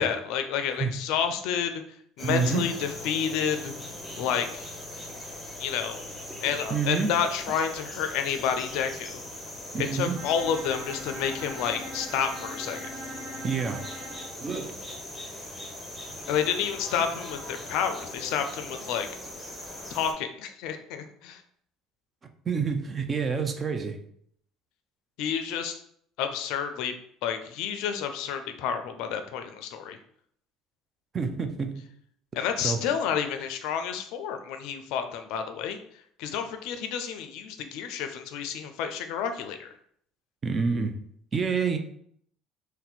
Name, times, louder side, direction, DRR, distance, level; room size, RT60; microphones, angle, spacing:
voice 1, 0.0-1.8 2.2-3.7 4.2-4.7 5.6-6.0 6.4-9.2 9.9-12.9 16.3-19.1 19.9-21.4 25.2-25.8 26.2-26.9 27.2-30.0 32.3-35.8 36.2-39.7, left 7 dB, 70° left, 0.4 m, -30 dB
sound 1, 2.2-20.1, left 1 dB, ahead, 0.9 m, -40 dB
voice 2, 2.2-2.6 6.3-7.1 9.7-10.2 13.4-13.9 14.4-14.7 22.5-24.0 31.1-31.9 32.6-32.9 40.4-41.0 41.3-41.8, right 5 dB, 35° right, 0.5 m, -28 dB
Bowed string instrument, 10.1-14.4, right 1 dB, 65° right, 1.2 m, -41 dB
2.6 x 2.1 x 4.0 m
hypercardioid pair, 75°, 0 cm